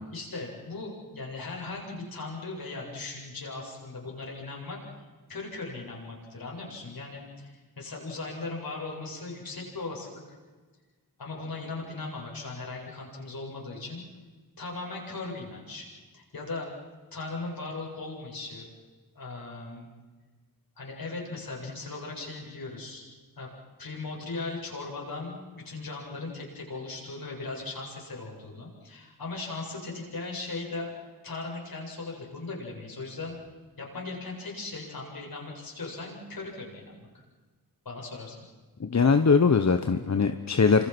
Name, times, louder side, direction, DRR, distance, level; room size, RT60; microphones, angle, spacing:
voice 1, 0.1-4.8 5.3-10.4 11.2-14.0 14.6-15.9 16.1-16.7 17.1-18.7 19.1-19.9 20.8-23.1 23.4-23.5 23.8-33.4 33.8-37.2 37.8-38.4, left 3 dB, 75° left, -2 dB, 7.9 m, -38 dB
voice 2, 38.8-40.9, left 5 dB, 50° left, 8 dB, 1.2 m, -21 dB
28.5 x 26.5 x 6.2 m, 1.4 s
wide cardioid pair, 80°, 36 cm